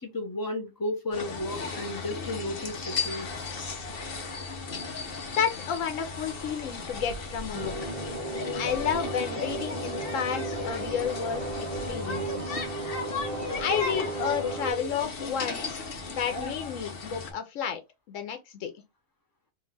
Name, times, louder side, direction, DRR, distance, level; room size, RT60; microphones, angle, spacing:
voice 1, 0.0-3.3, left 1 dB, 20° left, 0.8 m, -33 dB
sound 1, 1.1-17.3, left 4 dB, 50° left, 1.0 m, -36 dB
voice 2, 5.4-7.7 8.5-12.6 13.6-17.8 18.1-18.7, left 8 dB, 80° left, 1.1 m, -31 dB
sound 2, 7.5-14.7, right 2 dB, 35° right, 0.6 m, -35 dB
3.4 x 2.5 x 3.3 m
omnidirectional pair, 1.3 m